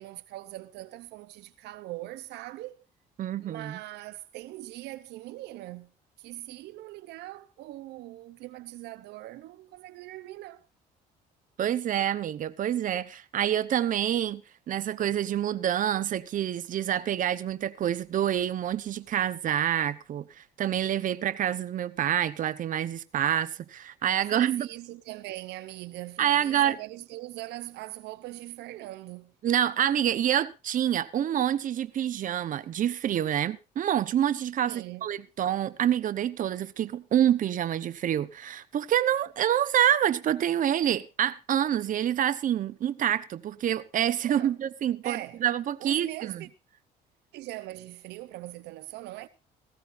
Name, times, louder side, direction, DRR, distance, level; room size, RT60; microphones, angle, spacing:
voice 1, 0.0-2.8 3.4-5.9 6.2-10.7 24.2-29.3 34.6-35.1 44.2-44.5 45.0-45.4 45.8-46.5 47.3-49.3, right 17 dB, 80° right, 0.7 m, -41 dB
voice 2, 3.2-3.8 11.6-14.4 14.7-24.7 26.2-26.8 29.4-46.4, right 10 dB, 50° right, 1.0 m, -27 dB
18.5 x 15.5 x 2.6 m
cardioid pair, 110°, 17 cm